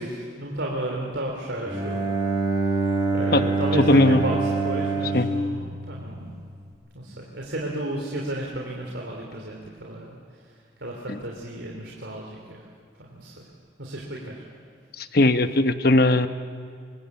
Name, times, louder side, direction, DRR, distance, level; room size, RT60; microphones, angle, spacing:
voice 1, 0.0-2.0 3.1-4.4 4.6-6.3 6.9-10.2 10.8-12.7 13.0-13.5 13.8-14.4, right 1 dB, 75° right, -1 dB, 3.4 m, -32 dB
Bowed string instrument, 1.6-6.5, right 3 dB, 20° right, 7.0 m, -26 dB
voice 2, 3.9-4.2 5.1-5.3 11.1-11.2 15.0-16.3, left 2 dB, 55° left, 9 dB, 1.1 m, -19 dB
25.5 x 23.5 x 8.5 m, 2.2 s
head